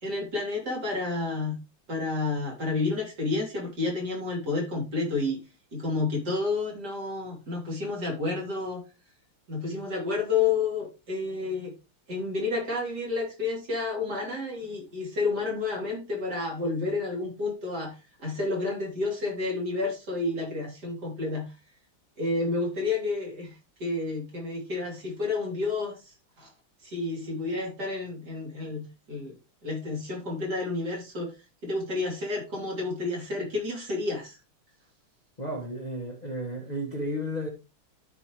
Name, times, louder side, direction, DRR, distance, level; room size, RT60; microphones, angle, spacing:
voice 1, 0.0-1.6 1.9-5.4 5.7-8.8 9.5-11.7 12.1-21.5 22.2-23.5 23.8-26.5 26.8-29.3 29.6-31.3 31.6-34.4, left 3 dB, 55° right, 3.5 m, -30 dB
voice 2, 35.4-37.5, equal, 25° left, 1.5 m, -33 dB
13.0 x 4.8 x 3.1 m
omnidirectional pair, 2.2 m